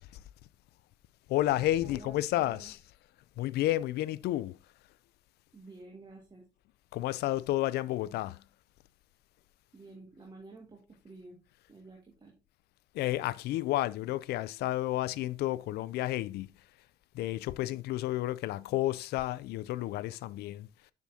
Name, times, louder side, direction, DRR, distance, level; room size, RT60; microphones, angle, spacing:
voice 1, 1.3-2.8 3.4-4.5 6.9-8.4 12.9-16.5 17.1-20.7, left 15 dB, 75° left, 0.4 m, -31 dB
voice 2, 1.8-2.7 5.5-6.4 9.7-11.4 11.7-12.3, right 3 dB, 25° right, 1.8 m, -51 dB
7.0 x 6.3 x 2.7 m
cardioid pair, 110°, 17 cm